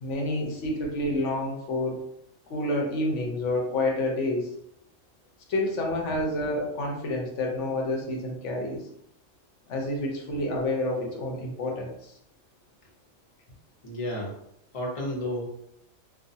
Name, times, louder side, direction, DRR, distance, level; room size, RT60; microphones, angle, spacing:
voice 1, 0.0-2.0 2.5-4.5 5.5-8.9 9.7-12.1, left 1 dB, 70° left, 0 dB, 0.9 m, -29 dB
voice 2, 13.8-14.3 14.7-15.5, left 1 dB, 35° left, -3 dB, 0.6 m, -31 dB
2.4 x 2.3 x 2.6 m, 0.73 s
omnidirectional pair, 1.4 m